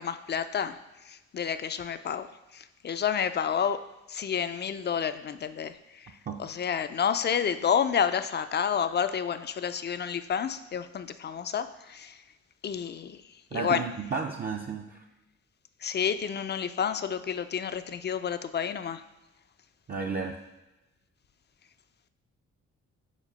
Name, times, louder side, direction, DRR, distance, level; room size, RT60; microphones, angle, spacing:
voice 1, 0.0-3.8 4.1-12.2 12.6-13.8 15.8-19.0, left 7 dB, 35° left, 11 dB, 0.4 m, -30 dB
voice 2, 13.5-15.0 19.9-20.4, right 5 dB, 30° right, 1 dB, 0.5 m, -33 dB
5.1 x 4.5 x 5.4 m, 1.0 s
cardioid pair, 90°, 30 cm